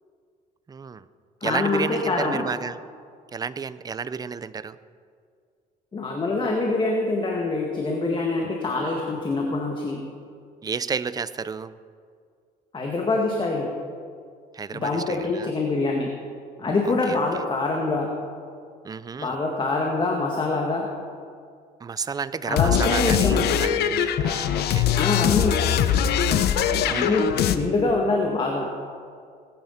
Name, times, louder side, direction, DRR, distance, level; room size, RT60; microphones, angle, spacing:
voice 1, 0.7-1.0 1.4-2.8 3.3-4.8 8.4-8.5 10.6-11.7 14.5-15.5 16.9-17.2 18.8-19.4 21.8-24.9 26.9-27.2, right 5 dB, 20° right, 15 dB, 0.5 m, -31 dB
voice 2, 1.4-2.4 5.9-10.0 12.7-13.7 14.7-16.1 16.6-18.1 19.2-20.9 22.4-23.6 24.9-25.6 26.9-28.7, left 3 dB, 30° left, 0 dB, 1.9 m, -25 dB
sound 1, 22.6-27.6, left 9 dB, 70° left, 0.9 m, -22 dB
19.0 x 10.5 x 5.8 m, 2.2 s
cardioid pair, 110°, 17 cm